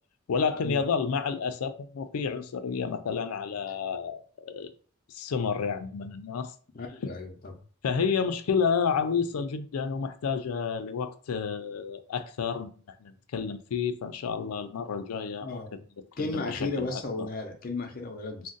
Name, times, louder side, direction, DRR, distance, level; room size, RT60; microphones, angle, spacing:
voice 1, 0.3-4.7 5.1-6.5 7.0-7.1 7.8-12.7 13.0-15.8 16.2-17.3, left 6 dB, 90° left, 0.4 m, -30 dB
voice 2, 6.7-7.5 15.4-15.8 16.2-18.5, left 3 dB, 40° left, 0.6 m, -34 dB
2.5 x 2.1 x 3.8 m
head